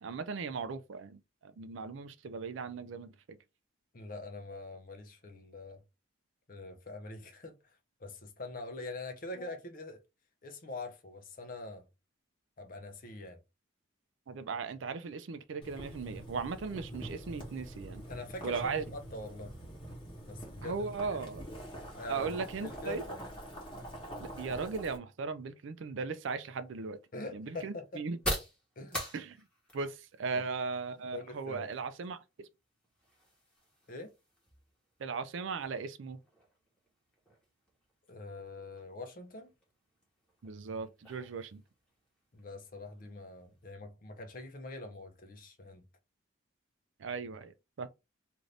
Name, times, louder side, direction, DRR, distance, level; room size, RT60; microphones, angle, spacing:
voice 1, 0.0-3.1 14.3-18.0 18.4-18.8 20.6-21.5 22.1-23.0 24.2-27.0 27.3-28.2 29.1-29.4 29.7-32.5 35.0-36.2 40.4-41.6 47.0-47.9, right 4 dB, 65° right, 0.4 m, -37 dB
voice 2, 3.9-5.8 6.5-7.5 8.0-10.0 10.4-11.9 12.6-13.4 18.1-19.5 20.3-21.2 22.0-22.4 22.6-23.3 27.1-28.0 28.8-29.0 30.3-30.4 31.1-31.7 33.9-34.1 38.1-39.5 42.3-45.9, left 2 dB, 40° left, 0.6 m, -44 dB
Boiling, 15.6-25.0, right 1 dB, 25° left, 1.1 m, -45 dB
sound 1, 26.1-43.7, equal, 5° left, 1.1 m, -46 dB
2.6 x 2.5 x 3.2 m
head